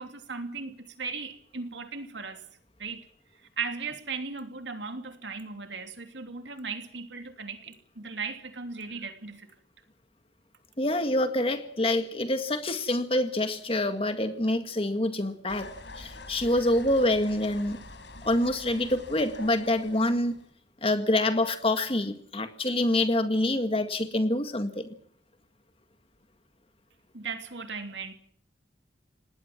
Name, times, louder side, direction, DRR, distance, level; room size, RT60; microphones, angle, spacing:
voice 1, 0.0-2.4 2.8-3.1 3.6-9.5 27.1-28.1, right 4 dB, 80° right, 3.0 m, -37 dB
voice 2, 10.8-17.8 18.2-20.4 20.8-24.9, left 1 dB, 30° left, 2.0 m, -26 dB
sound 1, 15.5-20.5, left 2 dB, 75° left, 4.6 m, -46 dB
26.5 x 19.0 x 6.0 m
head